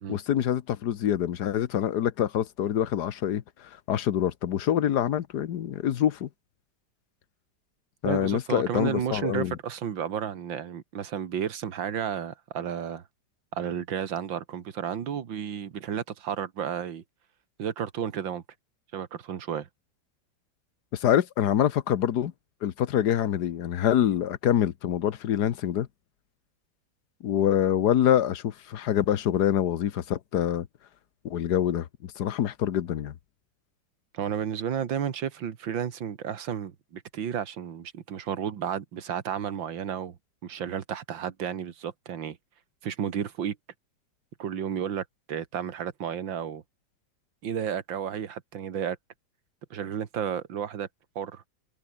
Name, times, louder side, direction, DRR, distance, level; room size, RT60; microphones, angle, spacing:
voice 1, 0.1-6.3 8.0-9.6 20.9-22.3 22.6-25.9 27.2-30.7 31.2-33.1, left 10 dB, 65° left, 1.5 m, -25 dB
voice 2, 8.0-13.0 13.5-17.0 17.6-18.4 18.9-19.7 34.1-40.2 40.4-42.4 42.8-43.6 44.4-46.6 47.4-49.0 49.7-50.9 51.2-51.4, right 8 dB, 85° right, 2.3 m, -32 dB
open air
omnidirectional pair, 2.0 m